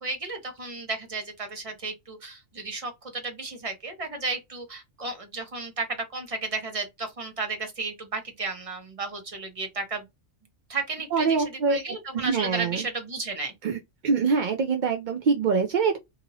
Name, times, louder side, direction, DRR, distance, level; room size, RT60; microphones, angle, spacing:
voice 1, 0.0-10.1 10.7-13.5, right 3 dB, 30° right, 0.9 m, -33 dB
voice 2, 11.1-11.8 12.1-12.8 13.6-13.8 14.0-16.0, right 5 dB, 60° right, 0.5 m, -24 dB
2.8 x 2.6 x 2.7 m
omnidirectional pair, 1.3 m